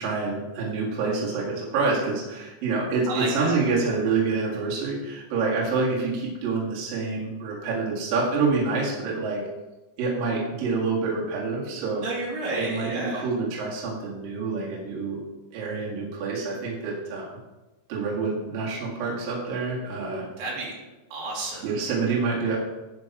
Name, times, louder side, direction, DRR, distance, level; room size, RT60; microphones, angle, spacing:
voice 1, 0.0-9.4 10.0-12.0 12.5-15.2 15.5-17.3 17.9-20.3 21.6-22.6, right 4 dB, 55° right, -4 dB, 3.1 m, -27 dB
voice 2, 3.1-3.6 12.0-13.3 20.4-20.8 21.1-21.9, right 2 dB, 75° right, -4 dB, 4.3 m, -31 dB
10.5 x 5.2 x 4.7 m, 1.1 s
omnidirectional pair, 5.5 m